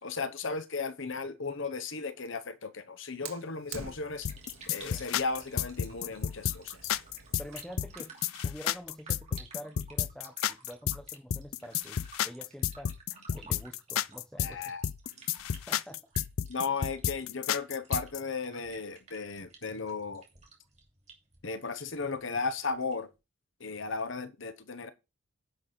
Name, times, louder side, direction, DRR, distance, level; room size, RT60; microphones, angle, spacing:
voice 1, 0.0-4.3 4.7-6.9 14.4-14.8 16.5-20.2 21.4-23.1 23.6-24.9, left 4 dB, 65° left, 1.1 m, -35 dB
Fire, 3.2-8.2, right 5 dB, 90° right, 2.0 m, -49 dB
sound 1, 4.1-23.1, right 4 dB, 30° right, 2.8 m, -55 dB
sound 2, 4.2-18.2, left 9 dB, 85° left, 0.5 m, -32 dB
voice 2, 7.4-8.1 8.4-12.0 12.2-12.9 13.3-14.6 15.7-16.0, equal, 5° left, 0.9 m, -46 dB
10.0 x 6.1 x 5.1 m
head